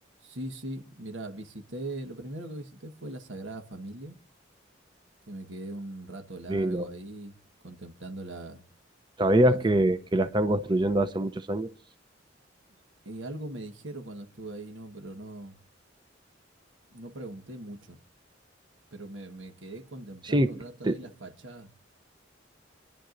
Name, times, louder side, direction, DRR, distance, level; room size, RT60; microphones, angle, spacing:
voice 1, 0.2-4.2 5.3-7.4 7.6-8.6 9.5-9.6 13.0-15.6 16.9-18.0 18.9-21.7, right 1 dB, 80° right, 1.5 m, -40 dB
voice 2, 6.5-6.9 9.2-11.7 20.2-20.6 20.8-21.0, right 1 dB, 25° right, 0.6 m, -24 dB
27.5 x 11.0 x 2.6 m
head